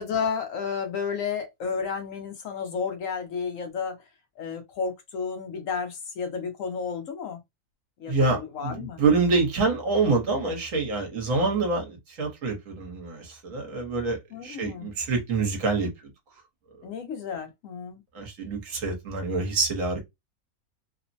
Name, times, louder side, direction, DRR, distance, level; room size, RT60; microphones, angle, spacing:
voice 1, 0.0-4.0 4.4-7.4 8.0-9.0 14.3-14.9 16.8-18.0, left 6 dB, 70° left, 1.0 m, -32 dB
voice 2, 8.1-15.9 18.1-20.0, right 3 dB, 65° right, 1.3 m, -26 dB
3.0 x 2.0 x 2.5 m
omnidirectional pair, 1.5 m